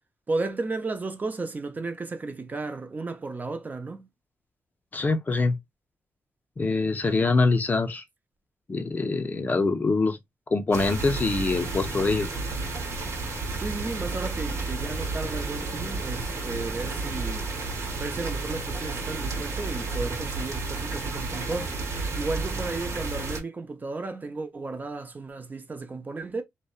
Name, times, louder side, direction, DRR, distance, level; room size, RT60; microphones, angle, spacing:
voice 1, 0.3-4.1 7.1-7.2 13.6-17.5 18.0-21.8 22.2-26.4, right 3 dB, 30° right, 0.5 m, -34 dB
voice 2, 4.9-5.6 6.6-8.0 8.7-10.2 10.5-12.3, left 3 dB, 30° left, 0.5 m, -24 dB
sound 1, 10.7-23.4, right 3 dB, 65° right, 0.9 m, -32 dB
2.6 x 2.1 x 2.3 m
cardioid pair, 90°, 5 cm